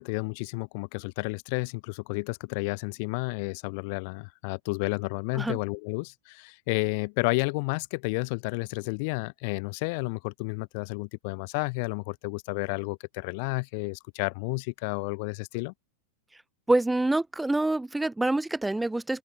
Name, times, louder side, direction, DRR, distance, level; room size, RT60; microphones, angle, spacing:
voice 1, 0.0-15.7, left 31 dB, 45° left, 0.7 m, -31 dB
voice 2, 16.7-19.2, right 2 dB, 5° right, 0.5 m, -26 dB
figure-of-eight pair, 90°, 0 cm